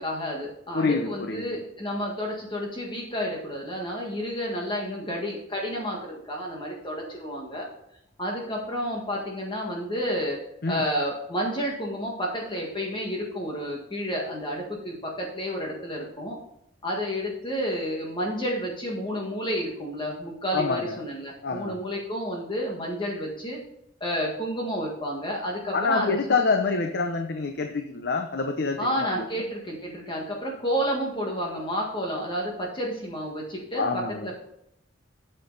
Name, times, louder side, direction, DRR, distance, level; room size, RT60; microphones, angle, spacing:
voice 1, 0.0-7.7 8.2-10.4 10.7-16.4 16.8-23.6 24.0-26.2 28.8-34.4, equal, 25° left, -1 dB, 1.7 m, -30 dB
voice 2, 0.7-1.6 10.6-10.8 20.5-21.0 21.4-21.8 25.7-29.2 33.8-34.3, left 4 dB, 55° left, 5 dB, 0.7 m, -26 dB
8.4 x 7.6 x 4.0 m, 0.77 s
head